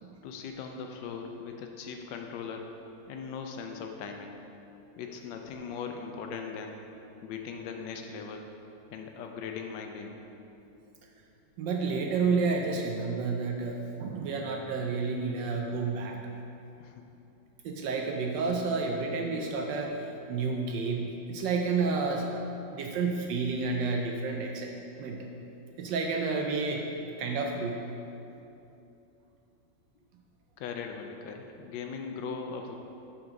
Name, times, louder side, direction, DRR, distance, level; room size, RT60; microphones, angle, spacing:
voice 1, 0.2-2.7 3.1-4.4 5.0-6.8 7.2-8.5 8.9-10.2 16.8-17.0 30.6-32.8, left 5 dB, 75° left, 4 dB, 1.2 m, -39 dB
voice 2, 11.6-16.2 17.6-22.3 22.7-24.7 25.0-25.3 25.8-26.9 27.2-27.8, right 4 dB, 75° right, 2 dB, 1.2 m, -30 dB
6.1 x 4.7 x 5.1 m, 2.8 s
omnidirectional pair, 2.1 m